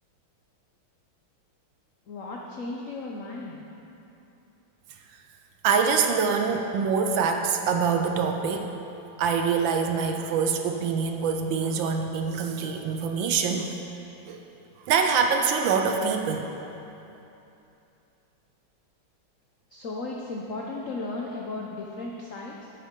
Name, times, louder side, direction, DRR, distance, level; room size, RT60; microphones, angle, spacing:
voice 1, 2.1-3.6 19.7-22.7, left 2 dB, 75° left, -2 dB, 0.7 m, -35 dB
voice 2, 5.6-8.7 9.2-13.7 14.3-14.4 14.9-16.5, right 6 dB, 75° right, 4 dB, 1.2 m, -25 dB
10.5 x 8.5 x 3.7 m, 2.9 s
omnidirectional pair, 2.4 m